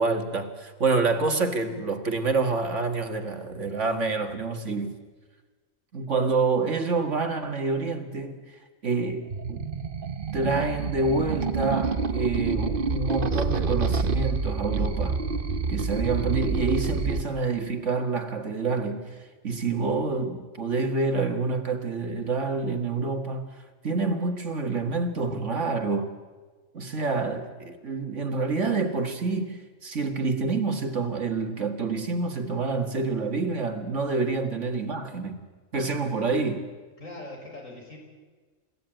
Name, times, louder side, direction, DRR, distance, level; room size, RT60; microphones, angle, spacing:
voice 1, 0.0-5.0 5.9-8.4 8.8-9.7 10.3-15.2 15.7-19.1 19.4-23.5 23.8-26.1 26.7-35.4 35.7-36.7, right 4 dB, 60° right, 2.1 m, -27 dB
sound 1, 9.3-17.2, right 4 dB, 40° right, 1.2 m, -28 dB
voice 2, 37.0-38.0, left 2 dB, 65° left, 6.1 m, -41 dB
29.5 x 16.0 x 9.1 m
omnidirectional pair, 1.4 m